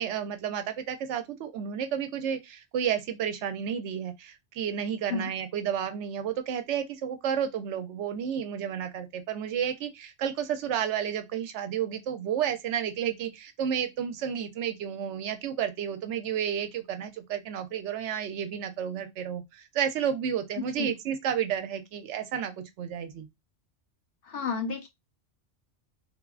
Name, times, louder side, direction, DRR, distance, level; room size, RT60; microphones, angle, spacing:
voice 1, 0.0-23.3, right 8 dB, 85° right, 0.9 m, -31 dB
voice 2, 20.6-20.9 24.2-24.9, left 5 dB, 60° left, 0.8 m, -32 dB
3.4 x 2.0 x 2.3 m
omnidirectional pair, 1.2 m